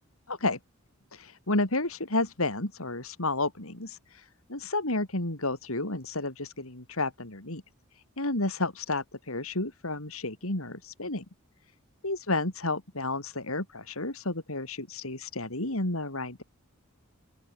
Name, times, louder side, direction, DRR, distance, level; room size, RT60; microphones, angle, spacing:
voice 1, 0.3-0.6 1.1-7.6 8.2-11.2 12.0-16.4, left 2 dB, 75° left, 4.2 m, -31 dB
open air
head